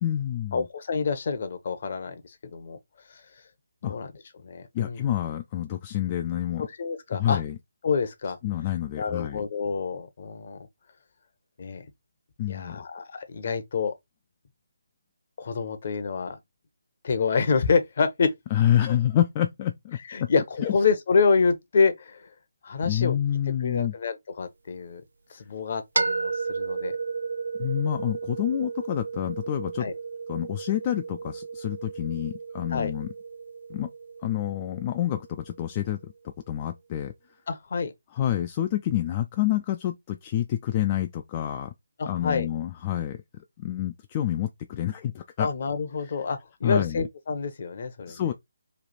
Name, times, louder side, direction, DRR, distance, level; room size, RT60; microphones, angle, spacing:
voice 1, 0.0-0.7 3.8-4.0 4.7-6.7 7.1-7.6 8.4-9.4 12.4-12.8 18.5-20.3 20.6-20.7 22.8-23.9 27.6-29.9 30.3-33.1 33.7-33.9 34.2-36.1 36.5-37.1 38.1-41.7 42.1-43.2 43.6-45.5 46.0-46.2 46.6-47.1 48.1-48.3, left 12 dB, 30° left, 0.3 m, -28 dB
voice 2, 0.5-2.8 3.8-4.1 4.4-5.1 6.6-7.4 7.8-8.4 9.0-10.6 11.6-11.9 12.5-13.9 15.4-16.4 17.0-18.3 20.1-22.3 22.6-23.2 23.6-25.0 25.3-26.9 29.8-29.9 32.7-32.9 37.5-37.9 42.0-42.5 45.4-48.3, left 5 dB, 45° left, 0.7 m, -27 dB
Metal sustained impacts, 26.0-35.8, right 4 dB, 70° right, 0.4 m, -34 dB
3.2 x 2.4 x 4.0 m
figure-of-eight pair, 150°, 0 cm